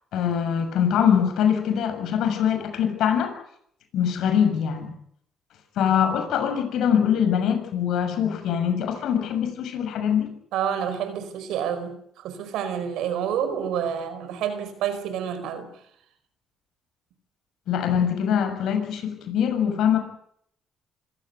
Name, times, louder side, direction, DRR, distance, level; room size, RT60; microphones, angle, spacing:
voice 1, 0.1-3.3 3.9-4.9 5.8-10.3 17.7-20.0, left 8 dB, 80° left, 6.7 m, -23 dB
voice 2, 10.5-15.8, right 8 dB, 90° right, 5.0 m, -29 dB
26.0 x 16.0 x 9.5 m
cardioid pair, 90°, 0 cm